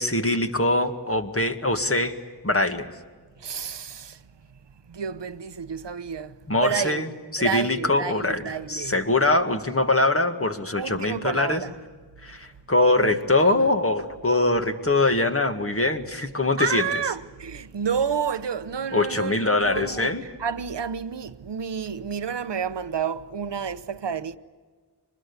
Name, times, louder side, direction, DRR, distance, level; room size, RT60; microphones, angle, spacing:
voice 1, 0.0-2.1 2.4-2.9 6.5-7.1 7.3-11.6 12.2-16.9 18.9-20.2, left 2 dB, 30° left, 2.0 m, -23 dB
voice 2, 3.4-4.2 4.9-7.0 7.4-9.1 10.8-11.8 13.0-13.2 13.5-13.7 16.6-24.4, right 7 dB, 75° right, 1.0 m, -30 dB
25.0 x 21.0 x 9.7 m
wide cardioid pair, 70°, 42 cm